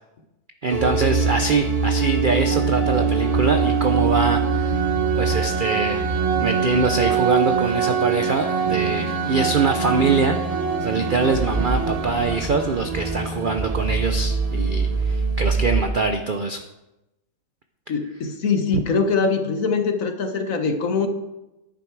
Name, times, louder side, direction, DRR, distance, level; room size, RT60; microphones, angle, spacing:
voice 1, 0.6-4.9 5.2-6.0 6.4-10.4 10.8-16.6 18.7-18.8, right 4 dB, 55° right, 6 dB, 0.5 m, -23 dB
sound 1, 0.7-15.8, right 5 dB, 30° right, 0.9 m, -23 dB
voice 2, 17.9-21.1, left 4 dB, 60° left, 7 dB, 1.4 m, -23 dB
11.0 x 9.1 x 4.7 m, 0.96 s
omnidirectional pair, 1.7 m